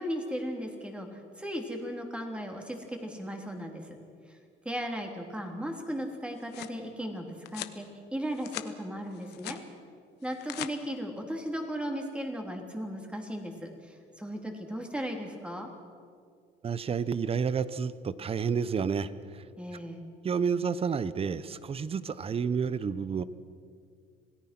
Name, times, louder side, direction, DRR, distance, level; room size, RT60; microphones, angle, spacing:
voice 1, 0.0-4.0 4.6-7.3 7.5-9.6 10.2-15.7 19.6-20.0, equal, 5° right, 2 dB, 3.4 m, -36 dB
sound 1, 6.1-6.8 7.4-7.8 8.2-8.7 9.1-9.6 10.2-10.7, left 15 dB, 85° left, 1.0 m, -41 dB
voice 2, 16.6-19.4 20.2-23.2, right 6 dB, 35° right, 15 dB, 0.9 m, -30 dB
27.0 x 17.5 x 6.1 m, 2.2 s
cardioid pair, 110°, 17 cm